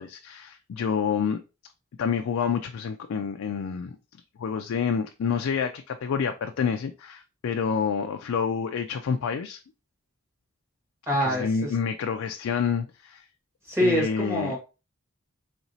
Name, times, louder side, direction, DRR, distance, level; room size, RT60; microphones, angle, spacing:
voice 1, 0.0-1.4 2.0-3.9 4.4-9.6 11.2-13.2 13.8-14.5, left 6 dB, 80° left, 0.3 m, -28 dB
voice 2, 11.1-11.7 13.7-14.6, equal, 15° right, 1.4 m, -25 dB
4.2 x 2.8 x 2.7 m
head